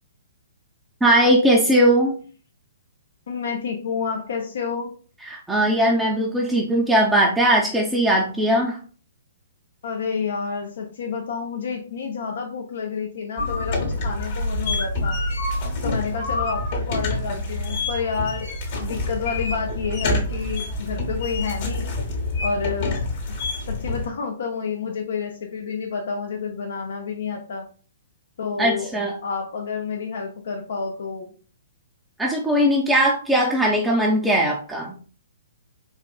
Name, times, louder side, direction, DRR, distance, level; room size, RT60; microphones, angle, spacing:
voice 1, 1.0-2.1 5.3-8.8 28.6-29.1 32.2-34.9, right 1 dB, 5° right, -3 dB, 0.5 m, -19 dB
voice 2, 3.3-4.9 9.8-15.2 15.8-21.9 22.4-23.0 23.7-27.6 28.4-28.9 29.2-31.3, left 5 dB, 65° left, 1 dB, 0.6 m, -29 dB
sound 1, 13.4-24.1, left 2 dB, 45° left, 1.0 m, -27 dB
4.2 x 2.4 x 2.3 m, 0.40 s
figure-of-eight pair, 125°, 0 cm